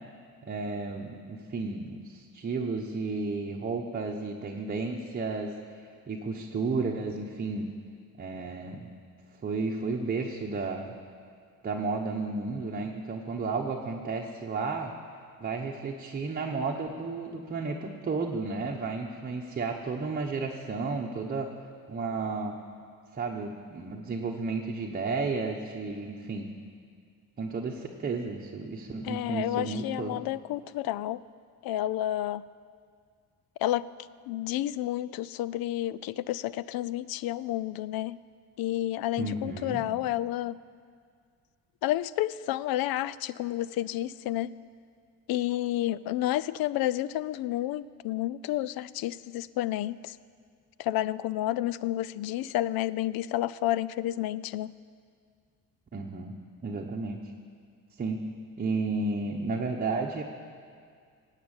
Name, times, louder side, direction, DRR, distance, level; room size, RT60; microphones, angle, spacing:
voice 1, 0.5-5.5 6.1-7.7 8.2-8.9 9.4-10.9 11.6-14.9 15.4-21.5 21.9-22.5 23.1-26.5 27.4-30.2 39.2-39.9 55.9-56.3 56.6-57.2 58.0-58.2 58.6-60.2, right 3 dB, 25° right, -1 dB, 1.0 m, -32 dB
voice 2, 29.0-31.2 31.6-32.4 33.6-33.9 34.3-38.2 38.6-40.6 41.8-44.5 45.3-50.2 50.8-54.7, left 14 dB, 80° left, 18 dB, 0.5 m, -30 dB
18.0 x 8.3 x 8.9 m, 2.2 s
cardioid pair, 145°, 35 cm